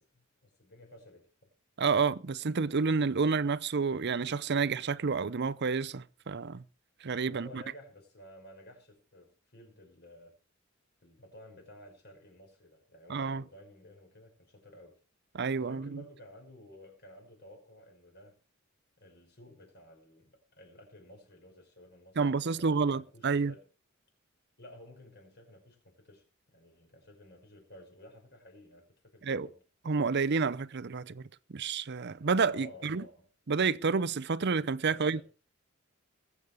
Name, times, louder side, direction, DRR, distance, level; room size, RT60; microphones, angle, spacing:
voice 1, 0.1-1.5 7.2-10.3 11.0-15.0 15.6-18.4 19.0-23.7 24.6-26.2 26.5-29.6 32.5-33.3 34.8-35.2, left 1 dB, 50° left, 6.0 m, -54 dB
voice 2, 1.8-6.6 7.0-7.6 13.1-13.4 15.3-16.0 22.2-23.5 29.2-29.5 29.9-33.0 33.5-35.2, right 5 dB, 55° right, 0.6 m, -29 dB
20.5 x 8.3 x 4.9 m
head